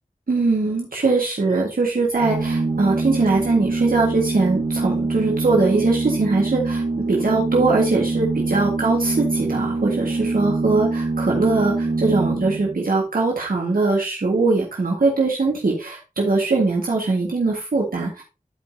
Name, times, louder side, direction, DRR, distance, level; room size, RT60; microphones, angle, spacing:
voice 1, 0.3-6.8 7.1-18.2, right 3 dB, 85° right, -3 dB, 1.8 m, -21 dB
Organ, 2.1-12.8, right 3 dB, 55° right, 1.2 m, -24 dB
12.5 x 5.1 x 2.8 m, 0.29 s
wide cardioid pair, 50°, 14 cm